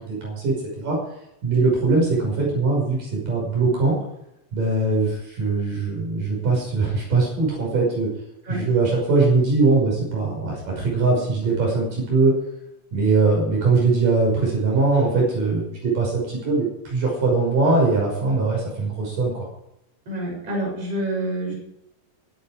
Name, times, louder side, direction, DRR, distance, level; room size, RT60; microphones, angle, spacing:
voice 1, 0.1-1.0 1.4-3.9 4.5-8.1 8.5-12.3 12.9-19.5, right 3 dB, 75° right, -2 dB, 7.4 m, -21 dB
voice 2, 20.1-21.5, right 1 dB, 45° right, -2 dB, 8.0 m, -27 dB
22.5 x 9.5 x 5.0 m, 0.82 s
omnidirectional pair, 3.8 m